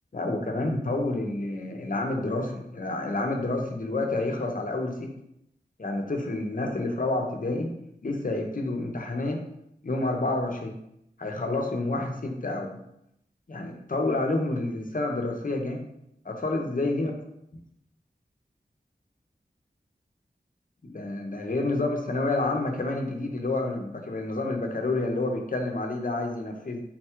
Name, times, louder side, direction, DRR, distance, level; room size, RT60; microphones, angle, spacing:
voice 1, 0.1-5.1 5.8-9.4 9.8-10.8 11.2-12.8 13.5-15.9 16.2-17.1 20.8-26.8, left 2 dB, 50° left, 2 dB, 0.7 m, -29 dB
4.0 x 2.3 x 4.4 m, 0.79 s
wide cardioid pair, 45°, 18 cm